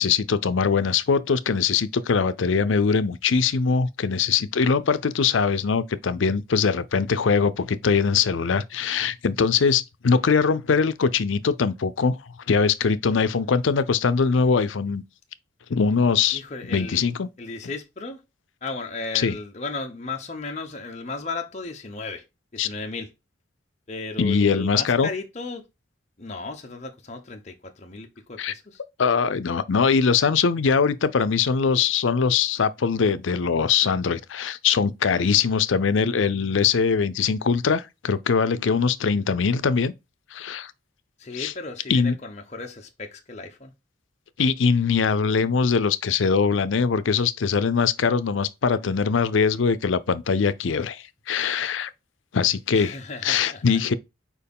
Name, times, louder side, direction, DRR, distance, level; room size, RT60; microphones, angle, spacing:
voice 1, 0.0-12.2 12.5-15.0 15.7-16.4 16.7-17.3 19.1-19.3 22.6-22.7 24.2-25.1 28.4-28.5 29.0-39.9 40.3-40.7 41.3-41.5 41.9-42.2 44.4-51.9 52.3-53.0 53.2-53.9, left 5 dB, 85° left, 0.5 m, -22 dB
voice 2, 16.3-17.0 17.4-18.2 18.6-22.2 22.5-23.1 23.9-25.6 26.2-28.8 41.2-43.7 52.7-53.8, left 3 dB, 35° left, 0.9 m, -35 dB
4.6 x 4.5 x 5.3 m
head